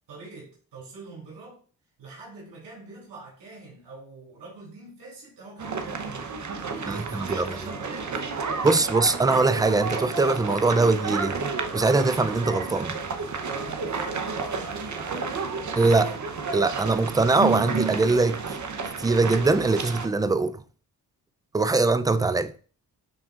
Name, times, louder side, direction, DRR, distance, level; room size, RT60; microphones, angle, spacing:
voice 1, 0.1-1.6 2.0-6.3 6.6-8.4 13.4-15.5, right 3 dB, 75° right, 3.3 m, -44 dB
sound 1, 5.6-20.1, right 4 dB, 45° right, 0.9 m, -31 dB
voice 2, 6.9-7.5 8.6-11.4 11.7-13.0 15.8-16.1 16.5-18.6 19.0-20.6 21.5-22.5, right 3 dB, 10° right, 0.4 m, -22 dB
10.5 x 3.6 x 2.5 m
supercardioid pair, 50°, 42 cm